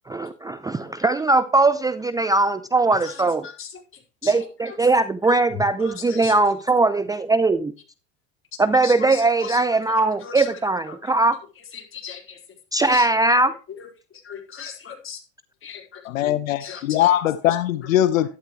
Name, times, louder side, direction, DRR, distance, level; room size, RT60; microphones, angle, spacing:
voice 1, 0.1-3.5 4.2-7.7 8.6-11.3 12.7-13.5, right 3 dB, 10° right, 0.6 m, -20 dB
voice 2, 3.0-3.7 4.2-4.3 4.6-4.7 5.8-6.3 8.8-9.6 9.9-10.4 11.7-12.4 12.8-13.1 14.2-15.2 15.6-16.0 16.6-17.1, left 7 dB, 30° left, 4.7 m, -37 dB
voice 3, 16.0-18.3, left 12 dB, 80° left, 1.1 m, -21 dB
12.0 x 11.5 x 3.2 m
hypercardioid pair, 100°, 39 cm